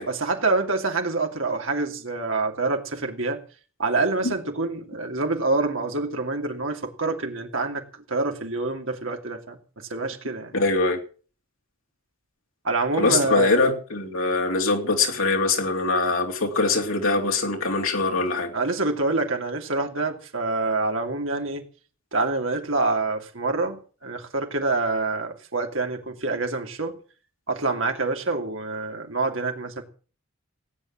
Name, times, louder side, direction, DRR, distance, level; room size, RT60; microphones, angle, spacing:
voice 1, 0.1-3.4 3.8-10.5 12.6-13.6 18.5-21.6 22.1-27.0 27.5-29.8, right 3 dB, 70° right, 2.8 m, -26 dB
voice 2, 10.5-11.0 13.0-18.5, left 3 dB, 80° left, 3.6 m, -23 dB
17.5 x 9.5 x 7.4 m
head